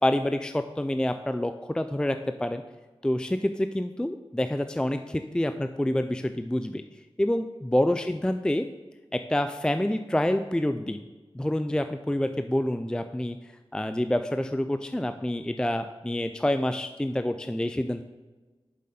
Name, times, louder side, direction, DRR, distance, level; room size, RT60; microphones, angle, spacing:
voice 1, 0.0-2.6 3.0-6.8 7.2-8.7 9.1-11.0 11.3-13.4 13.7-18.0, left 1 dB, 10° left, 9 dB, 0.3 m, -27 dB
7.5 x 7.4 x 4.2 m, 1.2 s
wide cardioid pair, 70°, 10 cm